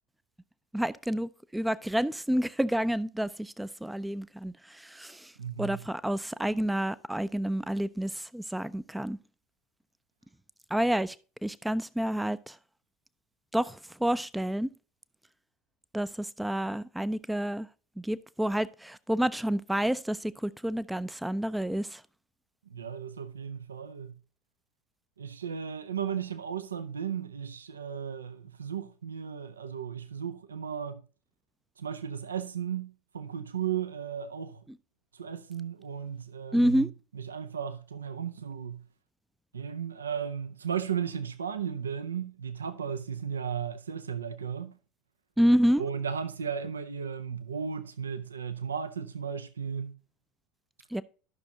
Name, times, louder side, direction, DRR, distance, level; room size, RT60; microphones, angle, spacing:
voice 1, 0.7-5.3 5.6-9.2 10.7-11.2 11.4-12.6 13.5-14.7 15.9-17.7 18.0-22.0 36.5-36.9 45.4-45.8 50.9-51.0, equal, 5° right, 0.4 m, -29 dB
voice 2, 5.4-5.8 22.7-24.2 25.2-31.0 31.8-34.6 35.1-36.9 37.1-38.8 39.5-44.7 45.8-49.9, right 7 dB, 75° right, 0.5 m, -35 dB
12.0 x 6.1 x 2.8 m
figure-of-eight pair, 70°, 0 cm